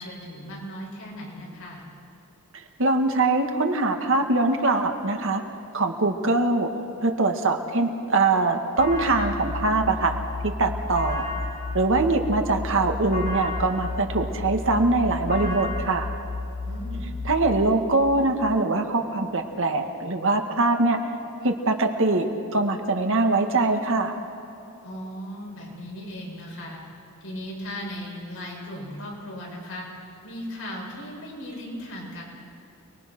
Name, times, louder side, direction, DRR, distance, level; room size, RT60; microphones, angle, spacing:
voice 1, 0.0-1.8 16.7-17.1 24.8-26.8 27.2-29.9 30.2-32.2, equal, 65° left, -4 dB, 7.3 m, -37 dB
voice 2, 2.8-5.4 5.7-6.7 7.0-11.3 11.7-16.1 17.2-21.0 21.4-22.3 22.5-24.2, right 2 dB, 60° right, 4 dB, 1.9 m, -23 dB
sound 1, 8.8-17.5, left 3 dB, 35° left, 6.2 m, -32 dB
29.0 x 21.0 x 6.1 m, 2.9 s
head